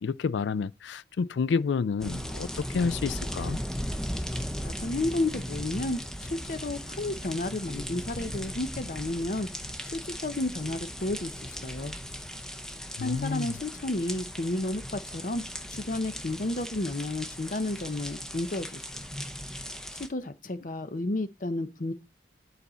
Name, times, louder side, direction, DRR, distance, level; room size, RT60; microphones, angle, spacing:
voice 1, 0.0-3.6 13.0-13.5, left 5 dB, 90° left, 0.4 m, -29 dB
sound 1, 2.0-20.1, equal, 5° left, 0.7 m, -37 dB
voice 2, 4.6-9.5 9.9-11.9 13.0-15.4 15.7-19.1 19.9-21.9, left 2 dB, 45° left, 0.6 m, -32 dB
9.3 x 4.2 x 4.2 m
head